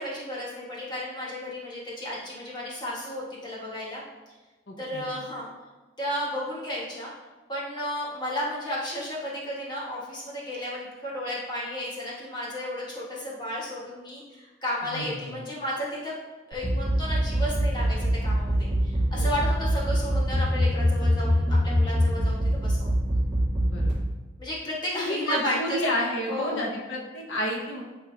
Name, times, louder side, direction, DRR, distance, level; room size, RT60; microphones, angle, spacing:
voice 1, 0.0-4.0 4.8-5.5 6.0-7.1 7.5-16.1 16.5-22.9 24.4-25.8 26.3-26.6, equal, 20° left, -6 dB, 1.6 m, -33 dB
voice 2, 4.7-5.1 14.9-15.4 19.0-19.4 23.6-23.9 25.0-27.8, left 1 dB, 75° left, -1 dB, 1.0 m, -31 dB
sound 1, 16.5-23.9, equal, 10° right, 1.9 m, -23 dB
11.0 x 3.7 x 2.9 m, 1.2 s
head